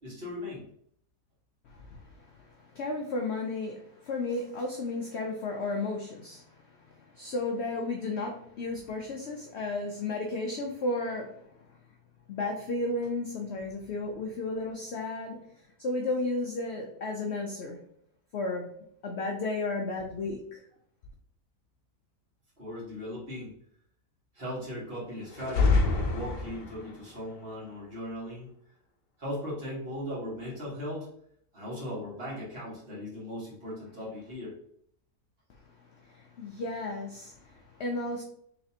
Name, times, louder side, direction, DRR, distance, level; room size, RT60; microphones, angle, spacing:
voice 1, 0.0-0.7 22.6-23.6 24.3-28.5 29.2-31.1 31.5-34.5, left 1 dB, 35° right, -6 dB, 1.8 m, -38 dB
voice 2, 1.6-11.4 11.7-11.8 12.3-15.4 15.8-17.8 18.3-18.7 19.0-20.6 35.8-38.2, left 2 dB, 70° left, 2 dB, 0.6 m, -34 dB
sound 1, 25.3-27.0, left 3 dB, 90° left, 1.3 m, -26 dB
4.1 x 3.3 x 2.7 m, 0.68 s
omnidirectional pair, 1.8 m